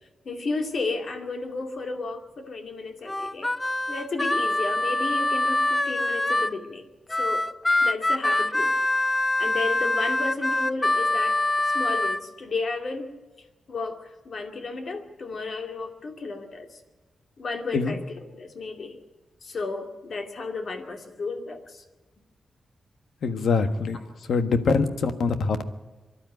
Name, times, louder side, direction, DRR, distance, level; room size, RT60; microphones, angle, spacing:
voice 1, 0.3-3.5 3.9-6.8 7.2-7.4 7.8-8.7 9.4-11.4 11.7-13.1 13.7-16.8 17.4-19.0 19.4-21.8, left 3 dB, 45° left, 5 dB, 2.4 m, -33 dB
Harmonica, 3.1-6.6 7.1-12.2, left 2 dB, 15° left, 0.6 m, -24 dB
voice 2, 23.2-24.0 24.3-25.6, left 4 dB, 70° left, 9 dB, 1.5 m, -24 dB
24.0 x 12.0 x 9.5 m, 1.2 s
wide cardioid pair, 170°, 0 cm